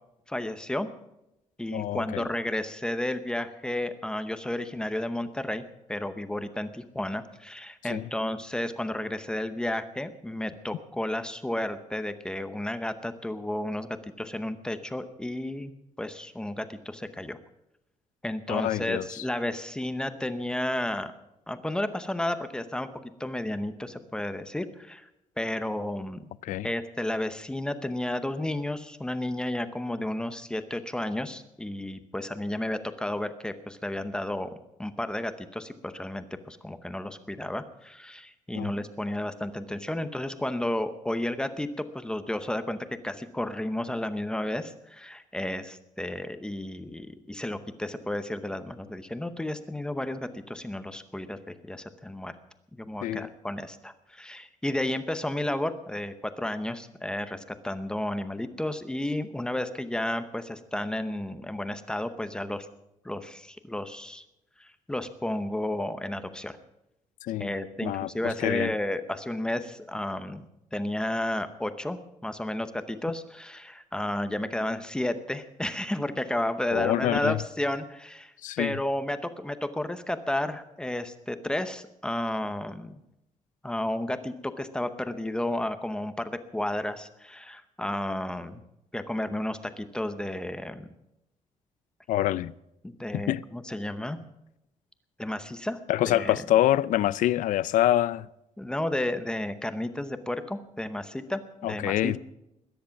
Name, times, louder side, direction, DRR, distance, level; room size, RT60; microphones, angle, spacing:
voice 1, 0.3-0.9 1.6-5.6 5.9-13.9 14.2-15.7 16.0-17.4 18.2-21.1 21.5-22.9 23.2-25.1 25.4-26.3 26.6-34.5 34.8-42.8 43.0-52.3 52.8-62.7 63.0-64.2 64.6-66.6 67.4-70.4 70.7-83.0 83.6-88.6 88.9-90.9 92.8-94.2 95.2-95.8 96.0-96.4 98.6-102.2, left 1 dB, 5° left, 0.8 m, -32 dB
voice 2, 1.7-2.2 7.8-8.1 18.5-19.2 26.4-26.7 38.6-38.7 53.0-53.3 67.2-67.5 67.8-68.7 76.7-77.4 78.4-78.8 92.1-92.5 93.1-93.4 95.9-98.3 101.6-102.2, left 13 dB, 80° left, 0.5 m, -26 dB
21.0 x 10.5 x 5.8 m
cardioid pair, 175°, 13 cm